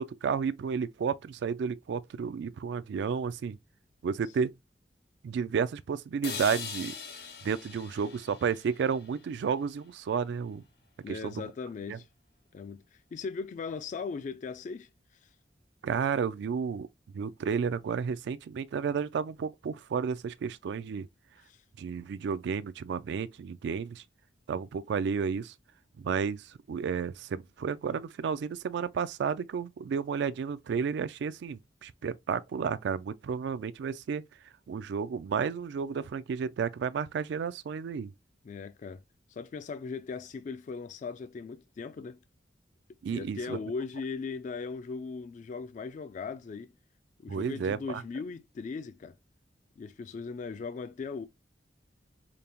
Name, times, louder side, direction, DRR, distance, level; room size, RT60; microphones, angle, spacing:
voice 1, 0.0-3.6 4.0-4.5 5.2-6.9 7.4-10.6 11.1-11.5 11.9-12.0 15.8-16.9 17.1-21.1 21.8-24.0 24.5-25.5 26.0-34.2 34.7-38.1 43.0-43.6 47.3-48.0, right 6 dB, 70° right, 0.3 m, -32 dB
sound 1, 6.2-10.3, left 6 dB, 65° left, 0.9 m, -42 dB
voice 2, 11.0-12.1 12.5-14.9 21.4-21.6 38.4-39.0 39.3-42.2 43.1-46.7 47.2-49.1 49.8-51.3, left 4 dB, 45° left, 0.3 m, -38 dB
5.1 x 2.0 x 2.8 m
head